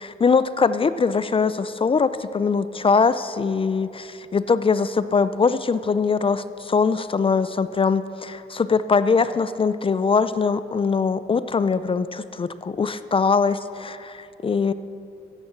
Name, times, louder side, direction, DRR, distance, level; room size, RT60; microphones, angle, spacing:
voice 1, 0.2-14.7, left 5 dB, 25° left, 14 dB, 0.4 m, -22 dB
14.0 x 9.1 x 6.0 m, 2.6 s
cardioid pair, 90°, 20 cm